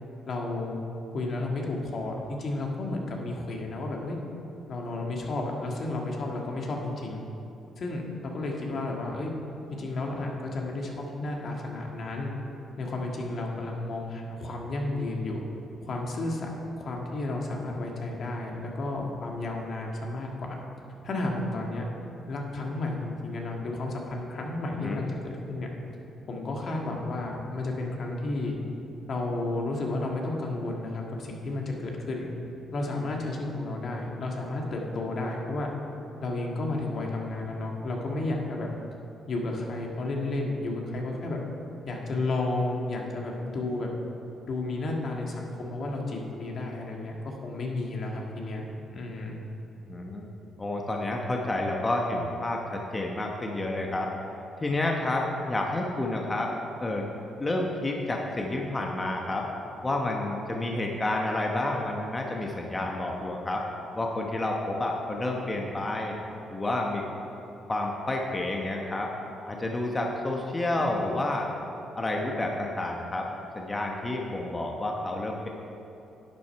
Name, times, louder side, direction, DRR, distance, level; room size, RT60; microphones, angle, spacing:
voice 1, 0.3-0.8 1.1-4.2 4.7-7.2 7.8-9.3 9.7-12.3 12.8-15.4 15.8-16.5 16.8-20.6 21.0-21.9 22.3-25.7 26.3-28.6 29.1-32.3 32.7-35.7 36.2-38.7 39.3-41.4 41.9-43.9 44.5-49.4, left 2 dB, 55° left, 0 dB, 1.7 m, -32 dB
voice 2, 49.9-50.3 50.6-54.1 54.6-56.5 56.8-57.1 57.4-59.5 59.8-63.6 63.9-66.1 66.5-67.0 67.7-69.1 69.5-71.5 72.0-73.3 73.5-75.5, left 2 dB, 20° left, 0 dB, 1.1 m, -29 dB
11.0 x 8.7 x 4.6 m, 3.0 s
cardioid pair, 90°, 0 cm